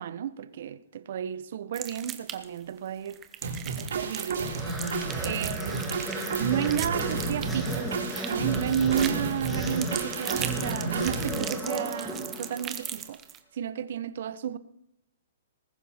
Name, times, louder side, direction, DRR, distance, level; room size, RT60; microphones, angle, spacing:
voice 1, 0.0-3.2 3.8-4.5 5.2-6.0 6.4-7.9 8.3-13.2 13.5-14.6, right 9 dB, 60° right, 0.9 m, -32 dB
sound 1, 1.7-2.6 3.1-13.4, right 9 dB, 20° right, 1.1 m, -38 dB
sound 2, 3.4-11.4, right 4 dB, 80° right, 4.6 m, -32 dB
sound 3, 4.4-12.9, equal, 5° left, 3.0 m, -36 dB
20.0 x 11.5 x 4.3 m
hypercardioid pair, 155°, 0 cm